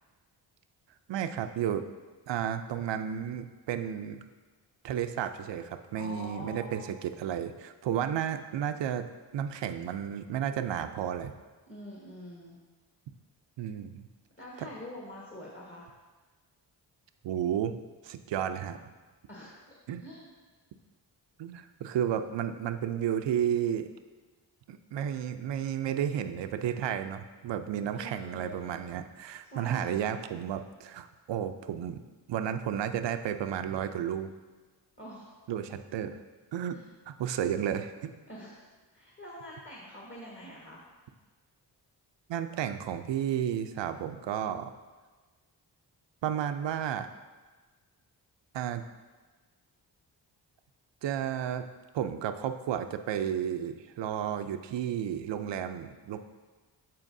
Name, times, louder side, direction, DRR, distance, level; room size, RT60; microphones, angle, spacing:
voice 1, 1.1-1.9 2.3-4.2 4.8-9.1 9.3-11.3 13.6-14.1 17.2-17.8 18.0-18.8 19.9-20.0 21.4-23.9 24.7-32.0 32.3-34.3 35.5-36.2 36.5-36.8 37.1-38.1 42.3-44.7 46.2-47.1 48.5-48.8 51.0-51.7 51.9-56.2, right 9 dB, 80° right, 9 dB, 0.6 m, -32 dB
voice 2, 5.9-6.9 11.7-12.6 14.4-15.9 19.3-20.3 27.9-28.8 29.5-30.4 35.0-35.4 36.7-36.8 38.3-40.8, left 1 dB, 30° left, -4 dB, 1.5 m, -46 dB
13.0 x 4.5 x 2.7 m, 1.3 s
cardioid pair, 65°, 43 cm